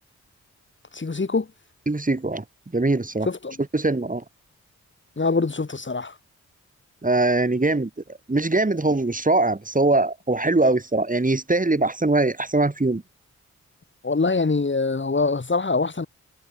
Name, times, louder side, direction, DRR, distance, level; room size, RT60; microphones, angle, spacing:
voice 1, 0.9-1.5 3.3-3.6 5.2-6.2 14.0-16.1, left 3 dB, 40° left, 4.4 m, -24 dB
voice 2, 1.9-2.4 2.7-3.3 3.7-4.2 7.0-7.9 8.3-13.0, right 2 dB, 25° right, 5.8 m, -22 dB
cardioid pair, 55°, 30 cm